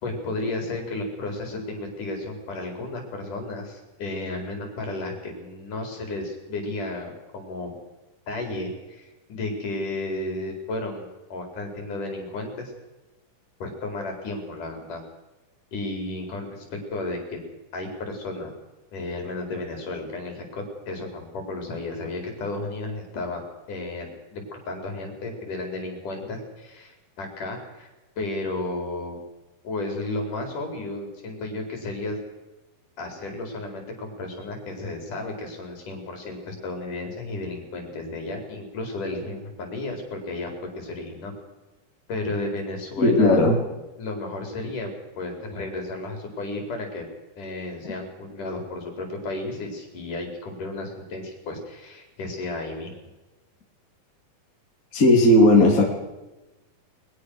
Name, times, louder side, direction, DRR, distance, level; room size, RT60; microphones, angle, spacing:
voice 1, 0.0-7.7 8.3-9.0 9.3-12.7 13.6-15.0 15.7-17.4 17.7-18.5 18.9-23.4 23.7-27.9 28.2-29.2 29.6-32.2 33.0-40.5 40.8-41.3 42.1-43.5 44.0-44.9 45.2-47.0 47.4-52.9, left 2 dB, 55° left, 3 dB, 6.0 m, -33 dB
voice 2, 43.0-43.6 54.9-55.8, left 1 dB, 20° left, 0 dB, 3.6 m, -16 dB
22.0 x 21.0 x 6.5 m, 1.0 s
omnidirectional pair, 4.4 m